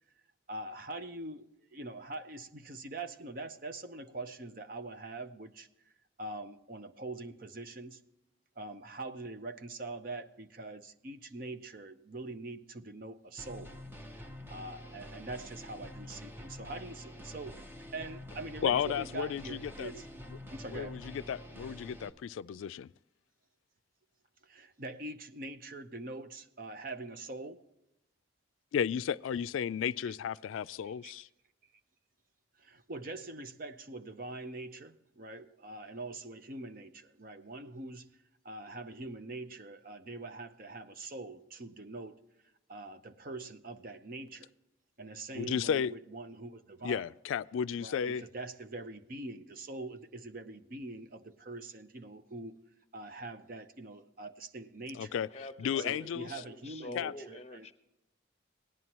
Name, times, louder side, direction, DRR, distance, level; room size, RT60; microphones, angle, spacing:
voice 1, 0.5-5.7 6.2-8.0 8.6-13.7 14.5-17.6 17.9-20.1 20.5-20.9 24.4-27.6 30.0-30.1 30.8-31.1 32.6-42.2 42.7-44.5 45.0-47.0 47.8-52.6 52.9-55.2 55.8-57.7, right 2 dB, 45° right, 0.7 m, -43 dB
sound 1, 13.4-22.1, equal, 10° right, 0.7 m, -47 dB
voice 2, 18.6-19.9 20.7-22.9 28.7-31.3 45.3-45.9 46.8-48.2 54.9-55.3 55.6-56.4 57.0-57.1, left 8 dB, 85° left, 0.3 m, -33 dB
voice 3, 55.3-57.7, left 2 dB, 35° left, 0.8 m, -46 dB
18.0 x 11.0 x 3.0 m
head